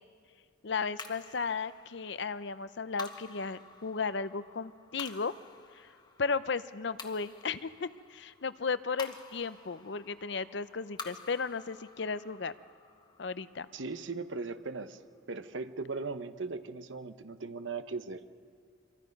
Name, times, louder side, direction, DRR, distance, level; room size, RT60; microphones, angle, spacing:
voice 1, 0.6-5.3 5.7-5.9 6.2-12.5 13.2-13.7, left 4 dB, 60° left, 14 dB, 0.6 m, -35 dB
sound 1, 1.0-15.5, left 4 dB, 20° left, 1.2 m, -51 dB
voice 2, 13.7-15.0 15.3-18.2, right 4 dB, 70° right, 11 dB, 0.9 m, -38 dB
26.0 x 23.5 x 5.3 m, 2.2 s
head